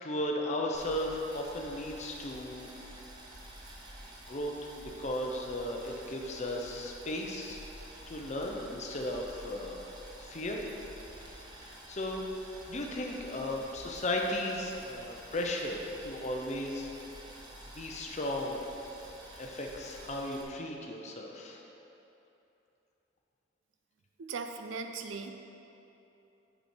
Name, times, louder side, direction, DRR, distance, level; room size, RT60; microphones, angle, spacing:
voice 1, 0.0-2.7 4.3-7.6 8.1-9.8 10.2-10.6 11.5-12.2 12.7-16.9 17.7-18.6 19.4-21.6, left 1 dB, 40° left, 0 dB, 0.7 m, -35 dB
Boiling, 0.7-20.4, right 1 dB, 20° right, 0.9 m, -50 dB
voice 2, 24.2-25.3, right 4 dB, 85° right, 6 dB, 0.5 m, -38 dB
6.2 x 5.7 x 4.4 m, 2.9 s
head